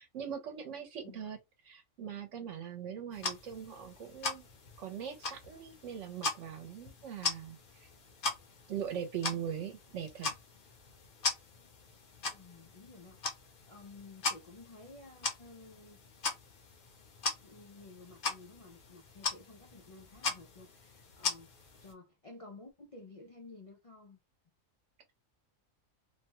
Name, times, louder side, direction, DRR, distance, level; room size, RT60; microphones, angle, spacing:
voice 1, 0.0-1.4 1.6-4.4 4.8-7.9 8.7-10.3, right 8 dB, 65° right, 1.0 m, -41 dB
sound 1, 3.1-21.9, left 3 dB, 50° left, 0.7 m, -40 dB
voice 2, 12.3-13.2 13.7-16.0 17.4-21.5 21.8-24.2, left 3 dB, 65° left, 0.3 m, -53 dB
2.8 x 2.2 x 2.9 m
omnidirectional pair, 1.4 m